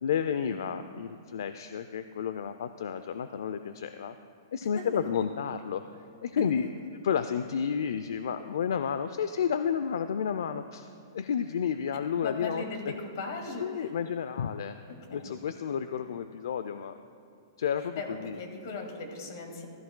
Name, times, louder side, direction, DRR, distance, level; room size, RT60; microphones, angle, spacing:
voice 1, 0.0-4.1 4.5-5.8 6.2-6.7 7.0-10.9 11.1-13.0 13.6-14.8 15.1-16.9 17.6-18.4, left 7 dB, 75° left, 10 dB, 0.4 m, -31 dB
voice 2, 12.2-13.9 15.1-15.3 15.9-16.0 18.0-19.7, left 3 dB, 55° left, 4 dB, 1.8 m, -38 dB
15.0 x 14.0 x 2.2 m, 2.6 s
hypercardioid pair, 160°, 2 cm